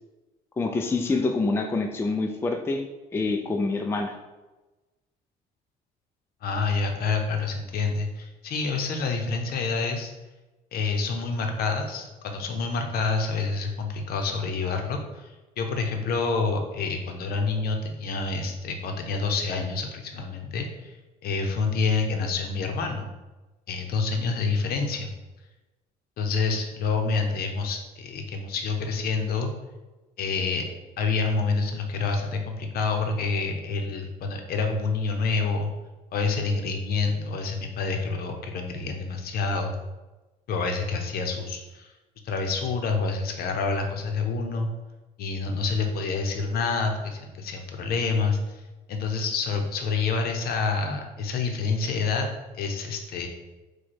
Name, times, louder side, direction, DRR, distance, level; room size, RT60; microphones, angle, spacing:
voice 1, 0.6-2.8 3.1-4.2, left 3 dB, 15° left, 4 dB, 0.4 m, -26 dB
voice 2, 6.4-10.1 10.7-21.0 21.2-23.1 23.7-25.1 26.2-29.5 30.2-30.7 31.0-35.7 36.1-39.8 40.5-41.9 42.2-44.7 45.2-48.6 48.9-52.3 52.5-53.3, left 4 dB, 65° left, 4 dB, 0.8 m, -27 dB
4.7 x 2.3 x 4.3 m, 1.1 s
cardioid pair, 110°, 17 cm